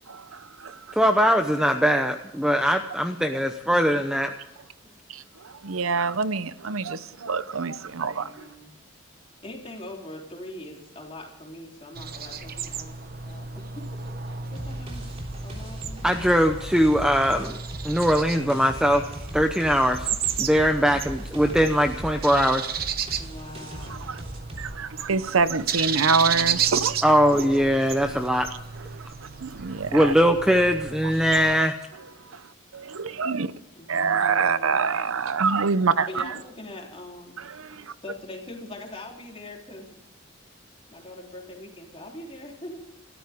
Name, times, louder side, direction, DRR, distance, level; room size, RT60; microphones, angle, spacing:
voice 1, 0.1-1.0 5.1-8.5 23.9-24.2 24.6-27.0 27.2-27.3 28.9-29.1 29.4-30.1 32.3-32.4 32.7-33.5 33.9-36.4 37.4-37.9, right 5 dB, 80° right, 0.8 m, -26 dB
voice 2, 1.0-4.3 16.0-17.6 17.8-19.1 19.3-20.1 20.4-22.7 27.0-28.5 29.9-31.7, equal, 5° right, 0.8 m, -21 dB
voice 3, 7.8-8.7 9.4-13.0 13.3-13.9 14.2-15.1 15.4-16.2 21.3-21.6 23.2-24.2 27.3-27.7 33.7-35.0 36.1-37.4 37.9-40.0 40.9-42.8, left 1 dB, 25° left, 3.5 m, -42 dB
sound 1, 11.9-31.6, right 8 dB, 45° right, 1.0 m, -33 dB
sound 2, 14.6-24.7, right 1 dB, 30° right, 3.2 m, -39 dB
27.5 x 13.5 x 3.6 m
head